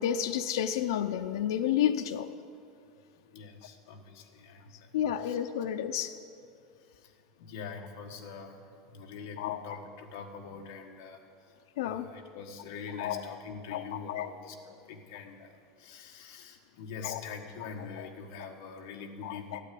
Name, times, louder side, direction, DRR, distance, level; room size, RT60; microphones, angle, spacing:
voice 1, 0.0-2.3 4.9-6.1 9.4-9.6 11.8-12.1 13.0-13.2 13.7-13.8 14.1-14.3 17.0-17.2 19.2-19.6, left 10 dB, 85° left, 7 dB, 0.6 m, -30 dB
voice 2, 3.3-5.4 6.8-11.5 11.8-19.6, left 5 dB, 55° left, 2 dB, 1.4 m, -44 dB
12.5 x 9.2 x 8.5 m, 2.5 s
supercardioid pair, 180°, 2 cm